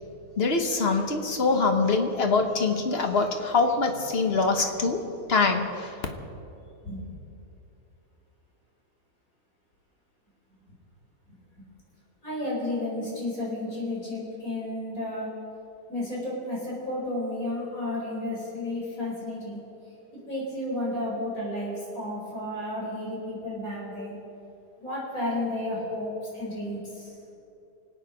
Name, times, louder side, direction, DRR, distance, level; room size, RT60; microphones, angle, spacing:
voice 1, 0.4-5.0 5.3-5.9, left 4 dB, 40° left, 5 dB, 1.4 m, -24 dB
voice 2, 12.2-15.3 15.9-19.6 20.3-24.2 24.8-27.2, left 1 dB, 55° left, -5 dB, 5.2 m, -32 dB
25.0 x 9.2 x 5.2 m, 2.9 s
omnidirectional pair, 1.8 m